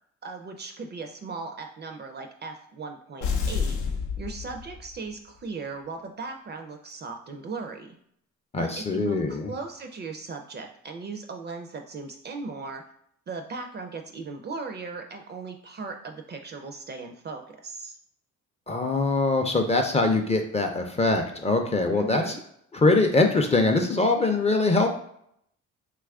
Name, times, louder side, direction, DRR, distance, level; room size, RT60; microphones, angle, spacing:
voice 1, 0.2-3.8 4.2-8.0 8.6-12.8 13.3-18.0 21.9-22.4, right 4 dB, 35° right, 5 dB, 0.4 m, -37 dB
sound 1, 3.2-5.1, left 5 dB, 85° left, 0.6 m, -29 dB
voice 2, 8.5-9.5 18.7-22.2 22.7-24.9, left 3 dB, 20° left, 4 dB, 0.4 m, -23 dB
2.9 x 2.4 x 3.4 m, 0.71 s
cardioid pair, 90°, 30 cm